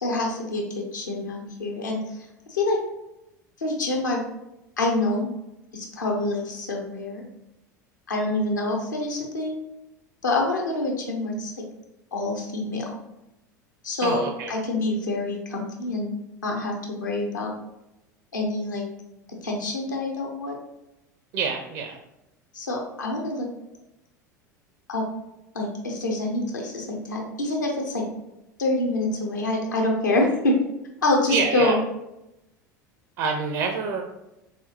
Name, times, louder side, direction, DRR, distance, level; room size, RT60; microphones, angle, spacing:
voice 1, 0.0-2.8 3.6-4.2 4.8-5.3 5.7-7.2 8.1-9.6 10.2-11.6 12.1-13.0 13.8-14.2 14.5-17.5 18.3-18.8 19.4-20.6 22.5-23.5 24.9-25.0 25.5-28.0 28.6-30.6 31.0-31.8, left 2 dB, 75° left, 0 dB, 1.0 m, -26 dB
voice 2, 14.0-14.5 21.3-22.0 31.3-31.8 33.2-34.0, right 5 dB, 45° right, 4 dB, 0.5 m, -26 dB
4.0 x 3.6 x 2.8 m, 0.90 s
figure-of-eight pair, 75°, 10 cm